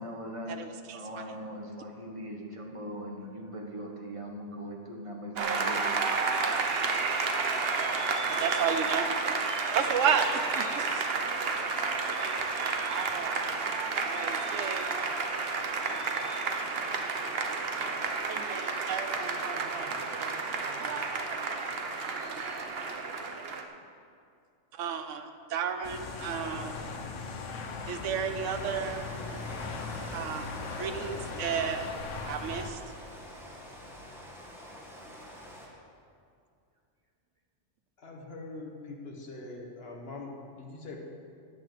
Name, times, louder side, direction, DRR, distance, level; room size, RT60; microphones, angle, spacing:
voice 1, 0.0-0.6 0.9-6.0, equal, 25° right, 0 dB, 1.4 m, -40 dB
voice 2, 0.6-1.0 8.3-9.1 9.7-11.1 12.8-13.4 14.0-15.2 18.1-19.4 24.7-26.7 27.9-29.1 30.1-30.5 30.8-31.9 32.3-32.8, right 7 dB, 80° right, 8 dB, 1.1 m, -32 dB
Applause, 5.4-23.6, right 4 dB, 55° right, 1.1 m, -31 dB
sound 1, 25.8-32.7, left 4 dB, 80° left, 1.3 m, -39 dB
Rain, 28.5-35.7, equal, ahead, 1.8 m, -46 dB
voice 3, 38.0-41.0, left 3 dB, 55° left, 0 dB, 1.8 m, -43 dB
9.9 x 8.7 x 7.4 m, 2.3 s
omnidirectional pair, 1.3 m